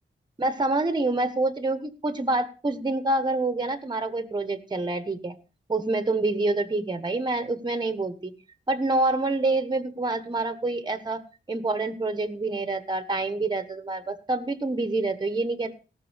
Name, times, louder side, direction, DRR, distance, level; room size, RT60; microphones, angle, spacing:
voice 1, 0.4-5.3 5.7-8.3 8.7-11.2 11.5-15.7, right 2 dB, 20° right, 11 dB, 1.3 m, -27 dB
17.5 x 6.2 x 6.4 m, 0.34 s
wide cardioid pair, 140°, 20 cm